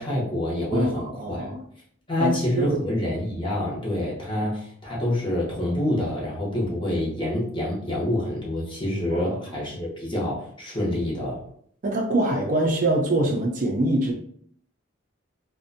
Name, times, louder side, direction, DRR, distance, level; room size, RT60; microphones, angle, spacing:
voice 1, 0.0-1.5 2.1-11.4, left 1 dB, 25° left, -5 dB, 0.7 m, -27 dB
voice 2, 0.7-1.6 2.2-2.8 4.3-4.5 9.1-9.3 11.8-14.1, right 1 dB, 40° right, 0 dB, 0.4 m, -24 dB
2.6 x 2.1 x 2.5 m, 0.63 s
head